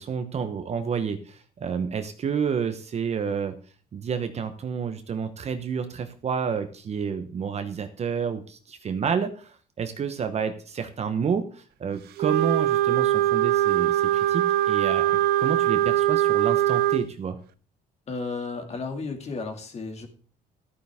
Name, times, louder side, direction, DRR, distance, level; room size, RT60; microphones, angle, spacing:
voice 1, 0.0-3.6 3.9-17.4, right 6 dB, 40° right, 8 dB, 1.1 m, -30 dB
Wind instrument woodwind instrument, 12.2-17.0, right 13 dB, 70° right, 0.6 m, -22 dB
voice 2, 18.1-20.1, left 4 dB, 40° left, 5 dB, 2.4 m, -33 dB
12.5 x 9.3 x 3.6 m, 0.40 s
cardioid pair, 110°, 17 cm